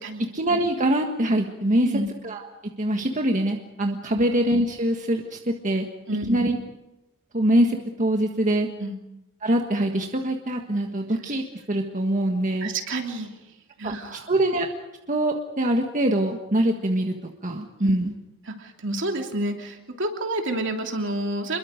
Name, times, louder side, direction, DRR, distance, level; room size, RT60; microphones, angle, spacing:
voice 1, 0.3-1.9 2.2-2.5 2.8-5.9 6.3-6.6 7.3-8.7 9.4-12.7 13.8-14.7 15.1-17.1 17.4-18.1, right 1 dB, 40° right, 3 dB, 1.6 m, -24 dB
voice 2, 1.8-2.1 4.1-4.2 6.1-6.4 8.8-8.9 12.6-13.3 13.8-14.3 17.8-17.9 18.5-21.6, right 1 dB, 60° right, 3 dB, 3.1 m, -29 dB
28.0 x 22.0 x 5.2 m, 0.95 s
head